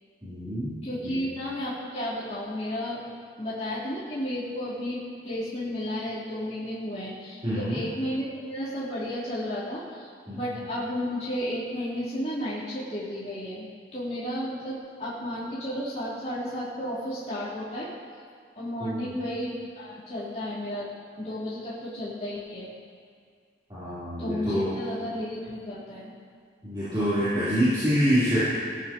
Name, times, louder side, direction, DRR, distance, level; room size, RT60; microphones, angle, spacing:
voice 1, 0.2-0.7 1.0-1.1 7.4-7.8 10.3-10.4 18.8-19.1 23.7-24.7 26.6-28.4, equal, 25° right, -15 dB, 3.8 m, -26 dB
voice 2, 0.8-3.0 3.4-13.7 13.9-17.9 18.5-22.7 24.2-26.1, equal, 40° left, -12 dB, 3.8 m, -33 dB
19.0 x 12.5 x 3.1 m, 2.1 s
head